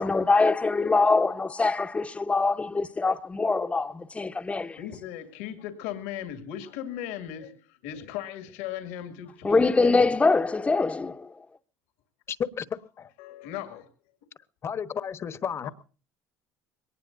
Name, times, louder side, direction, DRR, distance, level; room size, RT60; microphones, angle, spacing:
voice 1, 0.0-4.8 9.4-11.3, left 3 dB, 20° left, 1.0 m, -23 dB
voice 2, 4.5-10.1 13.2-13.9 15.6-15.7, left 11 dB, 85° left, 2.2 m, -38 dB
voice 3, 12.3-13.1 14.6-15.7, left 7 dB, 40° left, 1.2 m, -33 dB
22.0 x 19.0 x 2.6 m
supercardioid pair, 95°, 7 cm